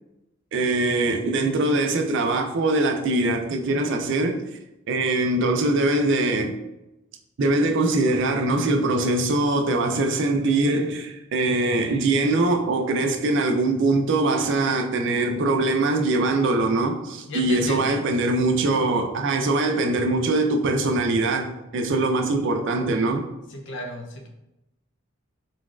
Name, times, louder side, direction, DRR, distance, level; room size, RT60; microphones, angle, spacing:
voice 1, 0.5-4.6 4.9-6.6 7.4-23.3, right 2 dB, 65° right, 0.4 m, -22 dB
voice 2, 17.3-18.0 23.5-24.3, left 1 dB, 65° left, 0.5 m, -34 dB
3.9 x 2.3 x 2.3 m
head